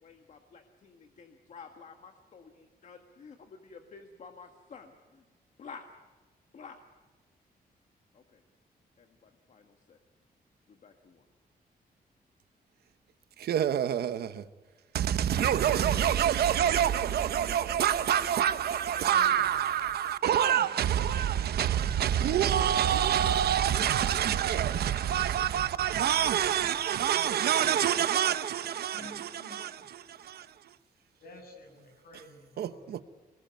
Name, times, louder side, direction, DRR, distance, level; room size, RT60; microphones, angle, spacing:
voice 1, 0.0-5.2 5.6-5.8 6.5-6.8 8.1-8.4 9.0-10.0 10.7-11.2, left 5 dB, 50° left, 1.7 m, -51 dB
voice 2, 13.4-14.5 14.9-30.8 32.6-33.0, right 10 dB, 85° right, 1.1 m, -27 dB
voice 3, 15.4-16.6 18.9-19.9 27.1-27.7 28.9-29.9 31.2-33.0, left 1 dB, 65° left, 7.3 m, -51 dB
25.5 x 21.0 x 9.4 m
wide cardioid pair, 165°, 16 cm